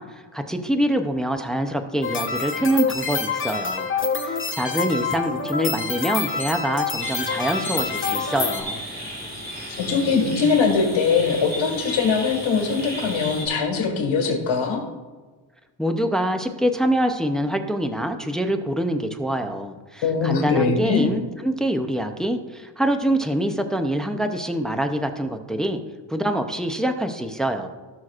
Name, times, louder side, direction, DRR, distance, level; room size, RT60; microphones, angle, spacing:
voice 1, 0.0-3.9 4.2-8.8 15.8-25.8 26.1-27.7, right 1 dB, ahead, 6 dB, 0.4 m, -25 dB
sound 1, 2.0-8.6, left 5 dB, 25° left, 0.9 m, -27 dB
sound 2, 7.0-13.5, equal, 20° right, 2.0 m, -34 dB
voice 2, 9.8-14.8 20.0-21.2, left 5 dB, 75° left, 1 dB, 1.9 m, -21 dB
17.0 x 6.3 x 2.4 m, 1.3 s
wide cardioid pair, 160°, 47 cm